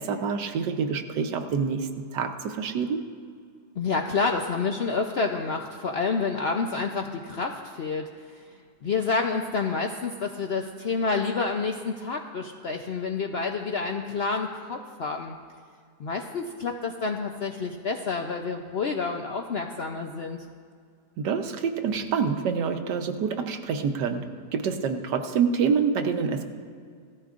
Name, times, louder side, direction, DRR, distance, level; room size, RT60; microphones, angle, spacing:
voice 1, 0.0-3.0 21.2-24.3 24.5-26.4, right 6 dB, 75° right, 6 dB, 1.4 m, -27 dB
voice 2, 3.8-8.4 8.8-15.3 16.0-20.4, left 4 dB, 85° left, 3 dB, 0.5 m, -29 dB
17.5 x 14.0 x 2.5 m, 2.2 s
omnidirectional pair, 1.9 m